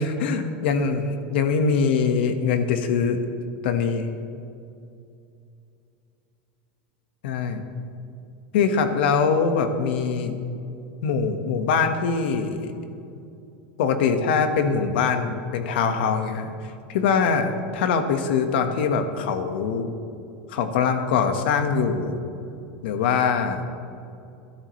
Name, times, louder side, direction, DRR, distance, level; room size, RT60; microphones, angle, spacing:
voice 1, 0.0-3.2 3.6-4.1 7.2-7.6 8.5-10.4 11.0-12.7 13.8-19.9 20.5-22.2 22.8-23.6, left 5 dB, 75° left, 6 dB, 1.5 m, -23 dB
22.0 x 12.5 x 3.3 m, 2.6 s
supercardioid pair, 170°, 6 cm